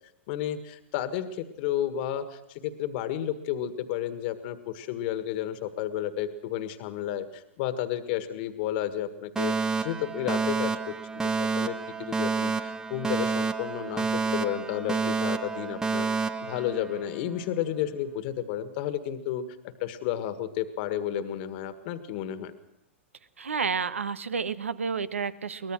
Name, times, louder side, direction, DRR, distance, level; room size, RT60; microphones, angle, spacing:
voice 1, 0.3-9.6 9.8-19.5 19.8-22.5, left 11 dB, 55° left, 11 dB, 1.6 m, -32 dB
Alarm, 9.4-17.4, right 4 dB, 10° right, 0.8 m, -29 dB
voice 2, 23.4-25.7, right 5 dB, 90° right, 15 dB, 1.1 m, -30 dB
23.0 x 19.0 x 6.3 m, 0.85 s
hypercardioid pair, 110°, 7 cm